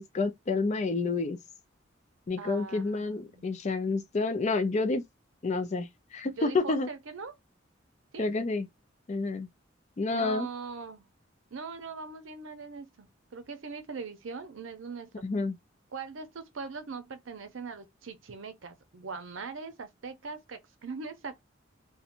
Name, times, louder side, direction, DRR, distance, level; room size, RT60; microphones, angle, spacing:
voice 1, 0.0-1.4 2.3-5.0 5.4-6.9 8.2-8.7 9.1-9.5 10.0-10.5 15.2-15.6, left 3 dB, 35° left, 0.4 m, -29 dB
voice 2, 2.4-3.5 6.4-7.3 8.1-8.3 10.1-11.1 11.5-15.1 15.9-21.4, right 4 dB, 90° right, 0.6 m, -41 dB
2.8 x 2.2 x 2.5 m
head